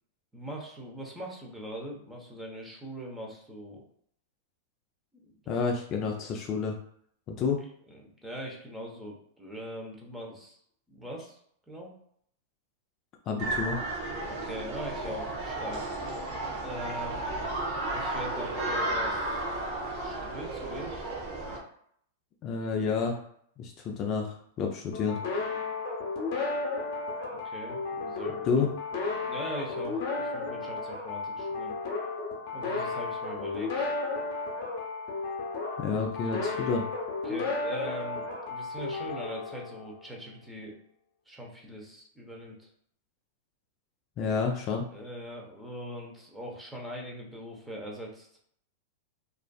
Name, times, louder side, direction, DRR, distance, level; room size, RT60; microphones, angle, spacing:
voice 1, 0.3-3.8 5.4-5.6 7.9-10.6 10.9-11.4 11.7-11.9 14.2-15.9 16.6-17.5 17.9-19.4 20.0-20.9 27.3-28.5 29.2-31.7 32.5-33.9 36.4-36.6 37.2-40.8 41.3-42.7 44.9-48.4, equal, 5° right, -2 dB, 0.7 m, -41 dB
voice 2, 5.5-6.8 7.3-7.6 13.3-13.8 22.4-23.2 23.6-25.2 28.4-28.7 35.8-36.9 44.2-44.9, left 5 dB, 40° left, 1 dB, 0.4 m, -29 dB
sound 1, 13.4-21.6, right 2 dB, 50° right, 0.7 m, -33 dB
sound 2, 24.9-40.3, left 3 dB, 60° left, 0.8 m, -33 dB
2.5 x 2.4 x 2.3 m, 0.66 s
hypercardioid pair, 110°, 0 cm